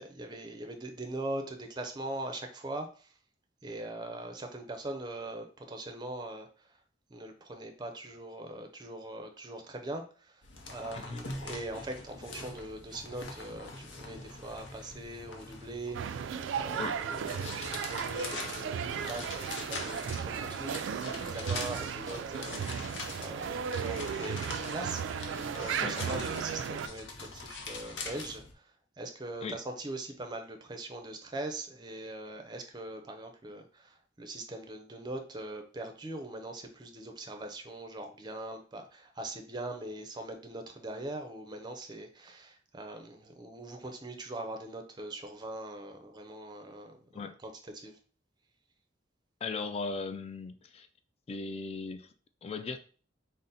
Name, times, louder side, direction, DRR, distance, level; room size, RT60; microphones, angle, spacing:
voice 1, 0.0-3.1 3.6-6.8 7.1-16.3 16.5-48.0, right 1 dB, 25° right, 0.5 m, -41 dB
sound 1, 10.4-28.5, left 3 dB, 70° left, 0.7 m, -44 dB
sound 2, 15.9-26.9, right 7 dB, 80° right, 0.3 m, -35 dB
voice 2, 49.4-50.9 51.3-52.1 52.4-52.8, left 4 dB, 35° left, 0.3 m, -37 dB
3.8 x 2.1 x 4.0 m
head